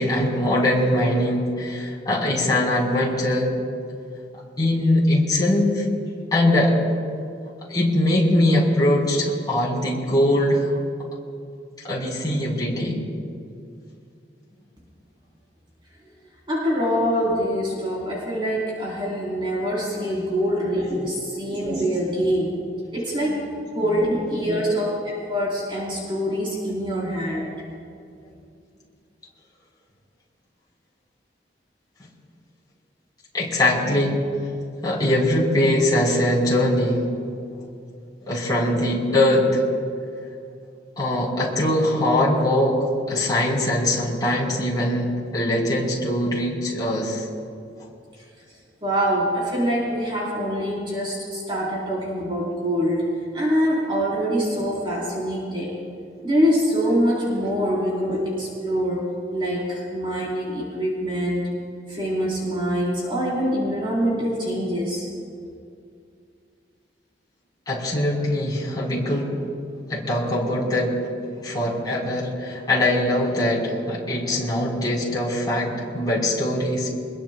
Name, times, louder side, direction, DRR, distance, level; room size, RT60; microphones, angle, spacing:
voice 1, 0.0-3.5 4.6-5.8 6.3-6.7 7.7-10.7 11.8-13.0 20.0-20.1 23.3-23.4 32.0-32.1 33.3-37.1 38.3-39.6 41.0-42.8 43.1-47.2 67.7-69.3 69.9-71.0 71.4-76.9, left 1 dB, 25° left, -5 dB, 4.3 m, -22 dB
voice 2, 16.5-22.5 22.9-23.4 23.7-27.5 48.8-53.0 53.3-55.8 56.2-59.1 59.3-61.5 61.9-65.1, equal, 30° right, -5 dB, 3.9 m, -24 dB
25.0 x 21.0 x 2.3 m, 2.4 s
head